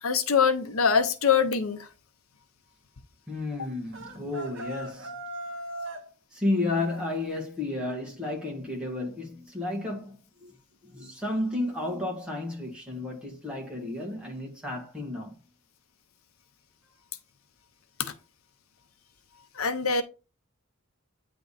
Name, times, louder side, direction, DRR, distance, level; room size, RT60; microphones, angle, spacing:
voice 1, 0.0-1.9 19.5-20.0, left 6 dB, 80° left, 0.8 m, -23 dB
voice 2, 3.3-5.1 6.3-10.5 10.8-15.3, left 2 dB, 5° right, 1.7 m, -32 dB
sound 1, 3.9-6.1, right 1 dB, 60° right, 1.2 m, -38 dB
9.1 x 3.4 x 4.2 m
head